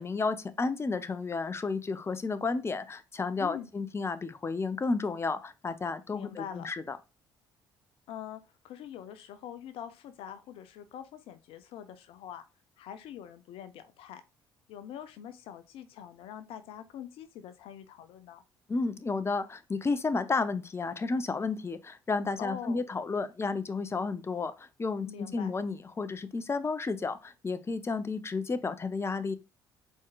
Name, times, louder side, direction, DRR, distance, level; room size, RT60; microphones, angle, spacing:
voice 1, 0.0-7.0 18.7-29.4, left 4 dB, 25° left, 0.7 m, -32 dB
voice 2, 3.4-3.7 6.1-6.7 8.1-12.4 12.8-14.2 14.7-18.4 22.4-22.8 25.1-25.5, left 9 dB, 65° left, 0.6 m, -44 dB
4.5 x 4.4 x 2.4 m
hypercardioid pair, 55°, 10 cm